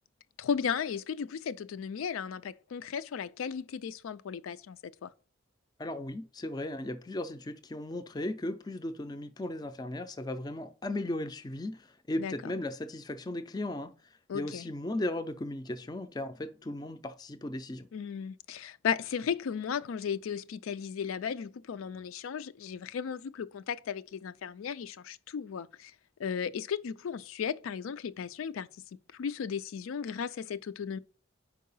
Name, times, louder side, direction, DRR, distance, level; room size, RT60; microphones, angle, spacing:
voice 1, 0.4-5.1 12.2-12.3 14.3-14.7 17.9-25.9 26.2-28.7 29.1-31.0, left 7 dB, 85° left, 0.4 m, -35 dB
voice 2, 5.8-13.9 14.3-17.9, left 1 dB, 20° left, 0.4 m, -36 dB
4.7 x 4.6 x 5.4 m
head